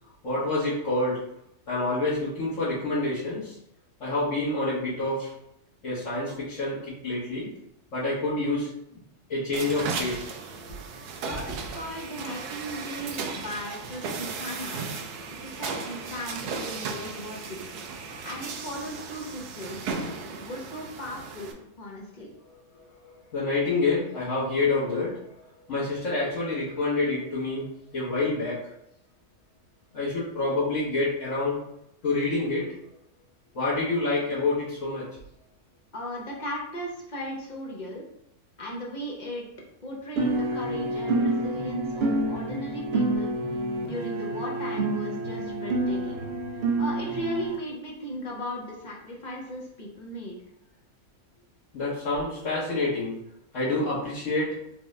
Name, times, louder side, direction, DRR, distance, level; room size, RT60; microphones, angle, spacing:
voice 1, 0.2-1.2 1.7-3.6 4.0-5.3 5.8-7.5 7.9-9.0 9.3-10.3 22.7-27.7 27.9-28.7 29.9-31.6 32.0-32.7 33.5-35.1 51.7-53.2 53.5-54.6, left 2 dB, 55° left, -13 dB, 1.7 m, -28 dB
sound 1, 9.5-21.5, right 4 dB, 85° right, 1.1 m, -36 dB
voice 2, 11.2-14.9 15.4-19.9 20.3-22.3 35.9-38.0 38.6-39.4 39.8-43.3 43.8-46.2 46.8-50.4, equal, 40° left, -3 dB, 0.7 m, -37 dB
sound 2, 40.2-47.6, right 2 dB, 60° right, 0.6 m, -28 dB
4.5 x 2.6 x 3.2 m, 0.77 s
omnidirectional pair, 1.6 m